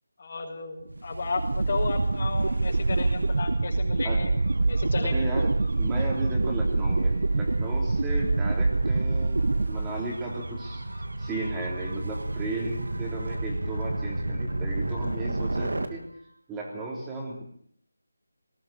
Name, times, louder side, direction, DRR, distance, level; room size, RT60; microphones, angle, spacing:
voice 1, 0.2-4.3 4.7-5.4, left 4 dB, 40° left, 2 dB, 5.8 m, -33 dB
sound 1, 0.9-10.4, right 3 dB, 65° right, 1.1 m, -25 dB
Gull seagull / Waves surf / Siren, 1.1-15.9, right 2 dB, 85° right, 2.7 m, -35 dB
voice 2, 5.0-10.8 11.2-16.1 16.5-17.4, right 2 dB, 10° right, -2 dB, 3.6 m, -35 dB
20.0 x 17.0 x 8.6 m, 0.63 s
figure-of-eight pair, 170°, 0 cm